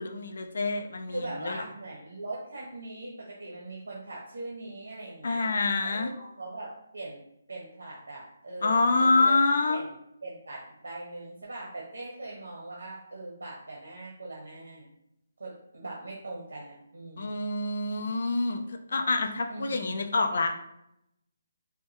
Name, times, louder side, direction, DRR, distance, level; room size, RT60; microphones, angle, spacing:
voice 1, 0.0-1.6 5.2-6.1 8.6-9.8 17.2-20.6, left 3 dB, 65° left, 5 dB, 0.5 m, -26 dB
voice 2, 1.1-5.5 5.8-7.2 7.5-9.4 9.7-9.9 10.2-14.9 15.4-17.4 19.5-20.0, right 2 dB, 80° right, -3 dB, 1.0 m, -41 dB
5.5 x 2.2 x 2.9 m, 0.80 s
hypercardioid pair, 155°, 0 cm